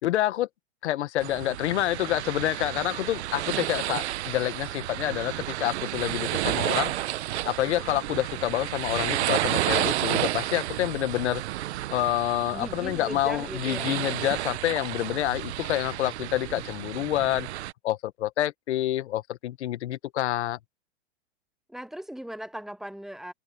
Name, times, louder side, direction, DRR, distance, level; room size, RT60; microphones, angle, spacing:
voice 1, 0.0-0.5 0.8-6.9 7.5-11.4 11.9-17.5 17.8-20.6, left 14 dB, 65° left, 1.8 m, -28 dB
sound 1, 1.2-17.7, right 15 dB, 65° right, 1.2 m, -31 dB
voice 2, 12.5-14.0 21.7-23.3, equal, ahead, 0.7 m, -38 dB
hypercardioid pair, 135°, 36 cm